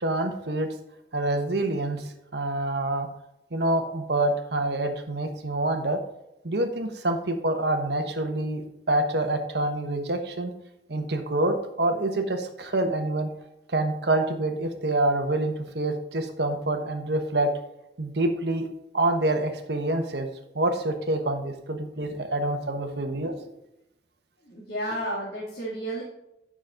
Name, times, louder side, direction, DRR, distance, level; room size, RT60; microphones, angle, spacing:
voice 1, 0.0-0.7 1.1-3.1 3.5-6.0 6.4-8.6 8.9-10.5 10.9-13.3 13.7-17.5 18.0-18.7 18.9-20.3 20.5-23.3, right 2 dB, 75° right, 5 dB, 1.2 m, -26 dB
voice 2, 24.4-26.0, right 1 dB, 60° left, -6 dB, 2.3 m, -32 dB
9.3 x 6.2 x 3.7 m, 0.86 s
head